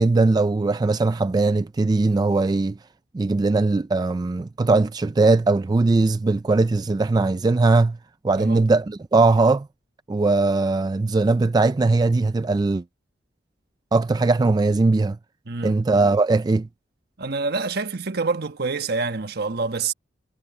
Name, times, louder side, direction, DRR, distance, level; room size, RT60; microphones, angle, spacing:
voice 1, 0.0-2.8 3.1-8.0 8.2-9.7 10.1-12.8 13.9-15.2 15.6-16.7, right 3 dB, 20° right, 0.3 m, -20 dB
voice 2, 15.5-15.8 17.2-19.9, right 4 dB, 60° right, 1.3 m, -27 dB
head